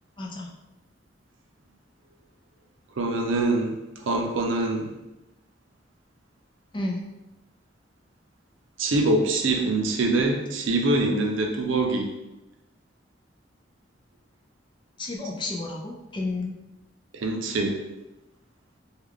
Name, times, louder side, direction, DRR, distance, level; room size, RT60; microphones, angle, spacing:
voice 1, 0.2-0.5 6.7-7.1 15.0-16.6, left 2 dB, 25° left, -1 dB, 0.4 m, -31 dB
voice 2, 3.0-4.9 8.8-12.1 17.1-17.8, right 2 dB, 90° right, 3 dB, 0.5 m, -24 dB
3.3 x 2.3 x 3.5 m, 0.98 s
head